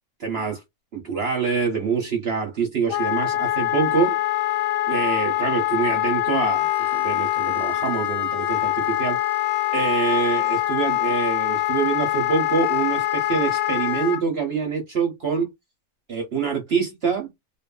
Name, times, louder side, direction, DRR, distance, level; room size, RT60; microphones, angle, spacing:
voice 1, 0.2-0.6 0.9-4.2 4.9-9.2 9.7-15.5 16.1-17.3, right 5 dB, 50° right, 0.9 m, -25 dB
Wind instrument woodwind instrument, 2.9-14.2, left 15 dB, 75° left, 1.0 m, -24 dB
2.8 x 2.5 x 2.3 m
omnidirectional pair, 1.6 m